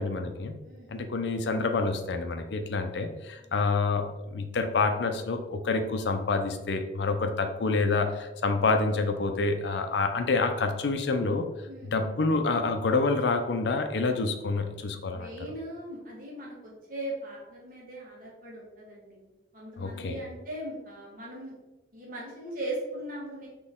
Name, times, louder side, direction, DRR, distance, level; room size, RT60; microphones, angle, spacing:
voice 1, 0.0-0.6 0.9-11.5 11.9-15.3 19.8-20.2, left 3 dB, 70° left, 6 dB, 0.5 m, -27 dB
voice 2, 11.6-12.1 15.1-21.5 21.9-23.5, right 1 dB, 50° right, -4 dB, 1.5 m, -39 dB
4.2 x 3.0 x 3.5 m, 1.0 s
head